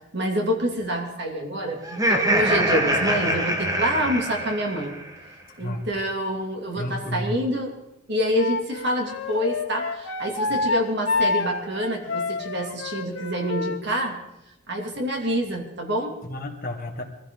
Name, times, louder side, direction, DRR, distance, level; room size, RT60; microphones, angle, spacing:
voice 1, 0.1-5.0 5.6-7.7 8.1-14.2 14.7-16.1, equal, 50° right, 1 dB, 2.7 m, -27 dB
Laughter, 1.8-5.1, right 1 dB, 15° right, 1.4 m, -24 dB
voice 2, 6.7-7.4 10.5-10.6 16.2-17.0, left 1 dB, 40° left, 0 dB, 2.1 m, -31 dB
Wind instrument woodwind instrument, 8.4-13.8, left 3 dB, 80° left, 1.6 m, -27 dB
22.5 x 15.0 x 3.9 m, 0.92 s
head